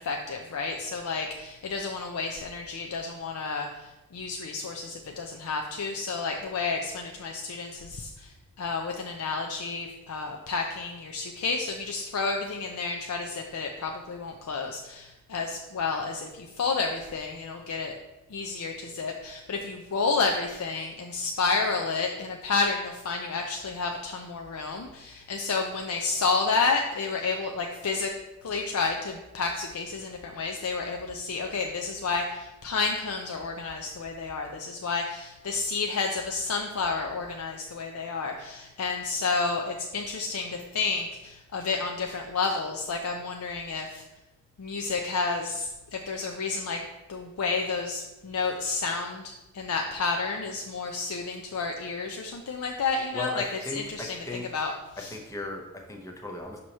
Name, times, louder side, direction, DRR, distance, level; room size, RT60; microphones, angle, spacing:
voice 1, 0.0-17.9 18.3-28.1 28.4-44.0 44.6-53.4 53.7-55.2, left 4 dB, 85° left, 2 dB, 0.5 m, -30 dB
voice 2, 53.1-54.7 55.0-56.6, left 2 dB, 15° left, 2 dB, 0.6 m, -37 dB
6.2 x 2.9 x 5.3 m, 1.0 s
head